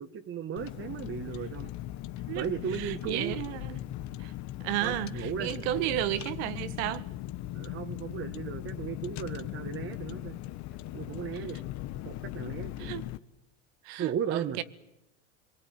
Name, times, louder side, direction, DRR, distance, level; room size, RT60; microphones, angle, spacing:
voice 1, 0.0-1.7 2.3-3.4 4.8-5.5 7.5-10.4 10.9-11.6 12.0-13.1 14.0-14.6, right 8 dB, 35° right, 1.8 m, -36 dB
Car, 0.6-13.2, left 14 dB, 50° left, 1.3 m, -39 dB
voice 2, 2.3-3.8 4.2-4.3 4.6-7.1 11.5-11.6 12.8-13.1 13.8-14.6, right 14 dB, 60° right, 1.8 m, -33 dB
26.5 x 22.5 x 9.6 m
hypercardioid pair, 105°, 37 cm